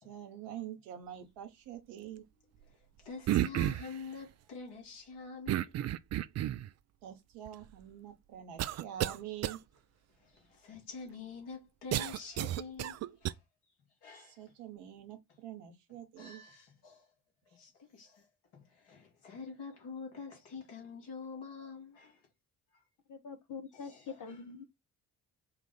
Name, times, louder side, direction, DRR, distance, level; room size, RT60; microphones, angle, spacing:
voice 1, 0.0-2.2 7.0-9.6 14.2-16.4, right 10 dB, 65° right, 1.1 m, -46 dB
voice 2, 2.6-5.8 10.2-13.4 14.0-14.4 16.2-17.1 17.5-18.3 18.5-22.2 22.7-22.8 23.7-24.4, left 5 dB, 65° left, 2.2 m, -47 dB
sound 1, 3.3-4.0 5.5-6.7 7.5-7.6 8.6-9.2 9.4-9.6 11.9-13.3, right 13 dB, 40° right, 0.4 m, -32 dB
voice 3, 23.1-24.6, left 5 dB, 45° left, 0.9 m, -44 dB
4.7 x 2.4 x 3.9 m
figure-of-eight pair, 45°, 44 cm